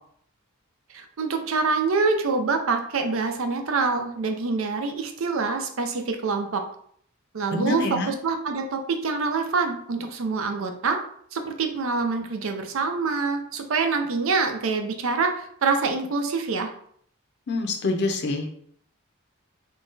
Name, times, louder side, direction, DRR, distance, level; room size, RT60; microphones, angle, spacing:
voice 1, 0.9-6.6 7.3-11.0 11.3-16.7, right 4 dB, 70° right, 5 dB, 0.5 m, -25 dB
voice 2, 7.5-8.1 17.5-18.6, left 2 dB, 55° left, 3 dB, 0.6 m, -26 dB
3.8 x 2.3 x 3.9 m, 0.64 s
head